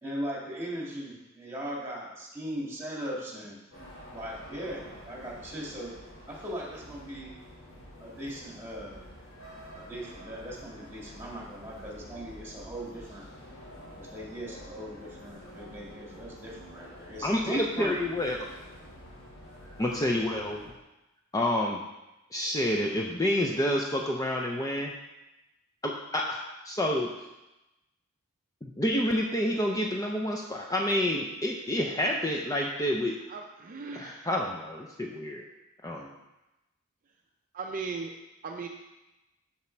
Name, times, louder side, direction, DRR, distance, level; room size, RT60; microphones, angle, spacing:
voice 1, 0.0-3.6 4.1-5.9 6.3-7.3 8.0-9.0 9.7-13.3 13.9-18.0 19.9-20.1, equal, 10° right, -3 dB, 1.9 m, -39 dB
sound 1, 3.7-20.7, equal, 75° left, 2.8 m, -48 dB
voice 2, 17.2-18.4 19.8-20.6 21.3-21.8 22.3-24.9 25.8-27.1 28.6-33.2 33.9-35.4 35.8-36.1, left 1 dB, 15° left, 0 dB, 0.5 m, -28 dB
voice 3, 33.3-34.2 37.5-38.1 38.4-38.7, right 4 dB, 40° right, 2 dB, 0.5 m, -37 dB
7.2 x 6.0 x 4.4 m, 0.99 s
head